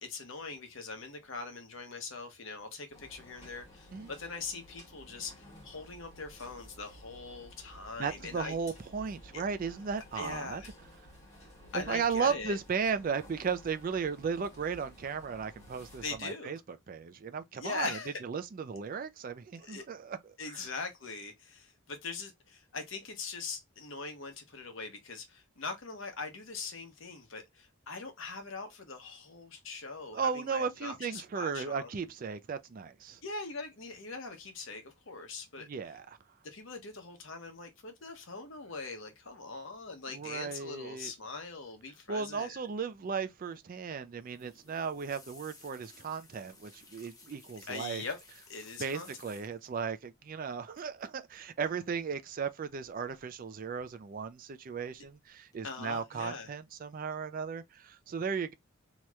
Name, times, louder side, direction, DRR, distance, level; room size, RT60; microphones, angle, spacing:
voice 1, 0.0-8.5 9.3-9.4 10.1-10.7 11.7-12.6 16.0-16.5 17.6-18.2 19.6-19.8 20.4-31.9 33.2-35.7 36.4-42.6 47.7-48.2 48.5-49.1 55.6-56.5, left 4 dB, 60° left, 0.9 m, -42 dB
sound 1, 2.9-16.2, equal, 30° left, 1.7 m, -54 dB
voice 2, 8.0-10.6 11.7-16.6 16.9-20.2 20.5-20.7 30.1-33.2 35.6-36.2 40.1-41.1 42.1-48.0 48.8-58.5, right 6 dB, 40° right, 0.3 m, -36 dB
sound 2, 44.2-49.8 50.8-51.1 51.3-51.7 52.8-53.4 53.7-54.3 54.7-55.1 55.5-55.6, left 3 dB, 15° left, 0.6 m, -57 dB
3.1 x 2.9 x 2.3 m
head